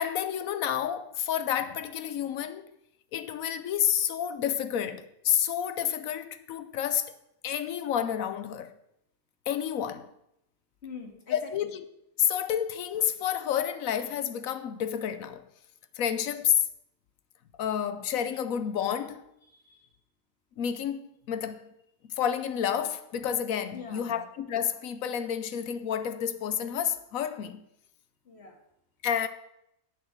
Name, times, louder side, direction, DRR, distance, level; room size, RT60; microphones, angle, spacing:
voice 1, 0.0-2.7 3.1-7.1 7.4-8.7 9.5-10.1 11.3-11.8 12.2-15.5 16.0-16.7 17.6-19.2 20.6-21.7 22.0-27.6 29.0-29.3, left 9 dB, 75° left, 1.1 m, -30 dB
voice 2, 10.8-11.5 19.5-19.9 23.7-24.2 28.3-28.6, left 5 dB, 50° left, 2.1 m, -44 dB
8.8 x 7.5 x 6.4 m
omnidirectional pair, 1.5 m